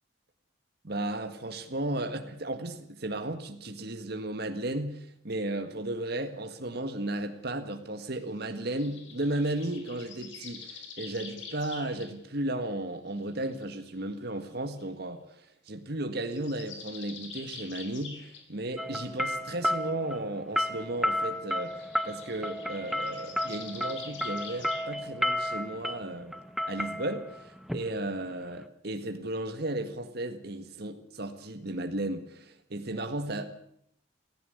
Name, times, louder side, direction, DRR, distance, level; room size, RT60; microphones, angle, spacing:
voice 1, 0.8-26.3 26.7-33.5, right 1 dB, 60° right, 6 dB, 1.8 m, -34 dB
sound 1, 8.6-12.1 12.7-13.8 14.8-14.9 16.2-18.5 21.7-24.8, left 5 dB, 85° left, 4.3 m, -46 dB
sound 2, 18.8-28.6, equal, ahead, 1.0 m, -32 dB
17.5 x 15.5 x 9.5 m, 0.70 s
head